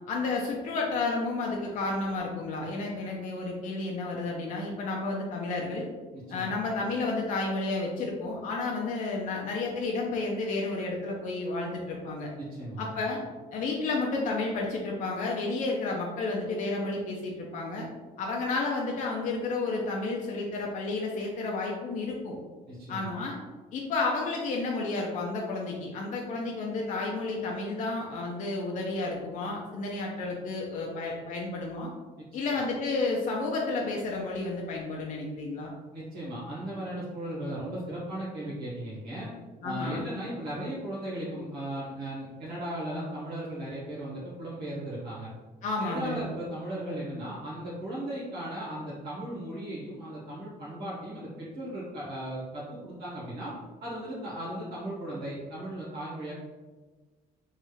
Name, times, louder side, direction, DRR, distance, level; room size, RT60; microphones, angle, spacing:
voice 1, 0.1-5.9 6.3-12.3 12.8-13.2 13.5-17.9 18.2-22.4 22.9-23.4 23.7-31.9 32.3-35.7 39.6-40.0 45.6-46.2, left 3 dB, 50° left, -2 dB, 0.5 m, -31 dB
voice 2, 6.1-6.5 12.4-12.9 22.7-23.1 35.9-39.3 39.6-45.3 45.8-53.5 53.8-56.3, right 1 dB, 70° right, -8 dB, 1.1 m, -36 dB
3.1 x 2.3 x 3.1 m, 1.3 s
cardioid pair, 110°, 17 cm